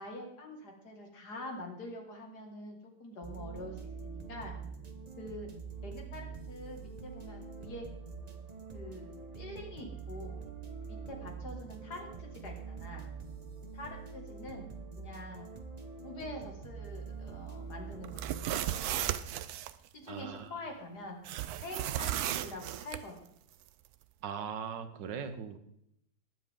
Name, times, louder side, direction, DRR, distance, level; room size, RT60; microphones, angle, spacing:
voice 1, 0.0-4.5 5.2-5.5 5.8-7.9 8.7-10.4 10.9-13.1 13.7-14.7 15.0-15.5 16.0-18.8 19.9-21.2 21.6-23.3, left 1 dB, 65° left, 2 dB, 2.7 m, -45 dB
sound 1, 3.2-19.0, right 5 dB, 35° right, 0.7 m, -45 dB
sound 2, 18.0-19.7 21.3-23.0, right 12 dB, 70° right, 1.0 m, -35 dB
voice 2, 20.1-20.5 24.2-25.6, right 7 dB, 85° right, 9 dB, 1.7 m, -39 dB
20.0 x 7.6 x 3.7 m, 0.74 s
omnidirectional pair, 1.9 m